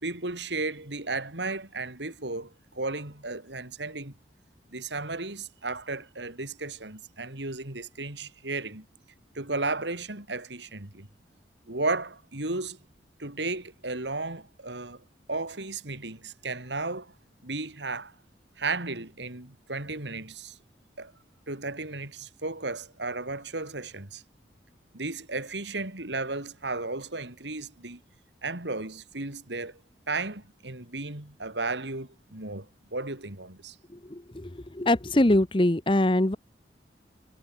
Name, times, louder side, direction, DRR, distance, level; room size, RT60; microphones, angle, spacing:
voice 1, 0.0-4.1 4.7-8.9 9.3-11.1 11.7-12.8 13.2-17.1 17.4-18.1 18.6-20.6 21.0-21.1 21.5-24.2 24.9-28.0 28.4-29.8 30.1-33.8, right 3 dB, 80° right, 3.9 m, -34 dB
voice 2, 34.1-36.4, left 1 dB, 30° left, 0.9 m, -23 dB
head